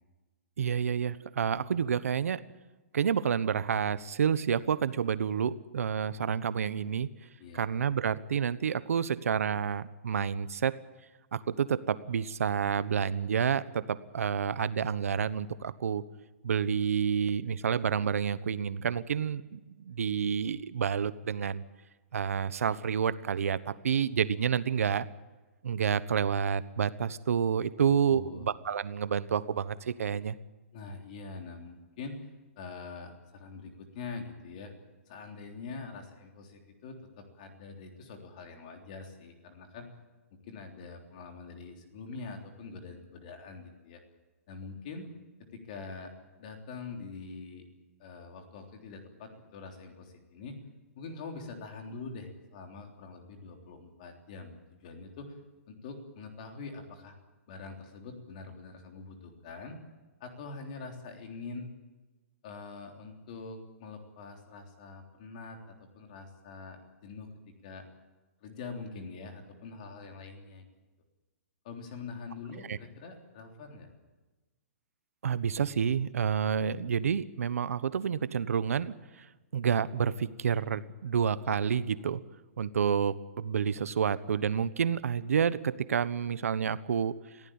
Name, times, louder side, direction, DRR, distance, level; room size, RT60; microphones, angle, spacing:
voice 1, 0.6-2.4 2.9-7.1 7.5-10.8 11.3-16.0 16.4-21.6 22.1-25.1 25.6-30.4 72.7-72.8 75.2-79.3 79.5-82.2 82.6-87.1, right 7 dB, 80° right, 14 dB, 1.2 m, -29 dB
voice 2, 7.4-7.8 28.1-28.6 30.7-32.2 32.6-34.7 35.1-39.9 40.3-44.0 44.5-45.1 45.5-46.1 46.4-47.7 48.0-50.6 51.0-55.4 55.7-57.2 57.5-59.8 60.2-61.7 62.4-67.8 68.4-70.7 71.6-73.9, left 4 dB, 30° left, 3 dB, 3.5 m, -44 dB
23.0 x 16.0 x 8.9 m, 1.2 s
hypercardioid pair, 180°, 8 cm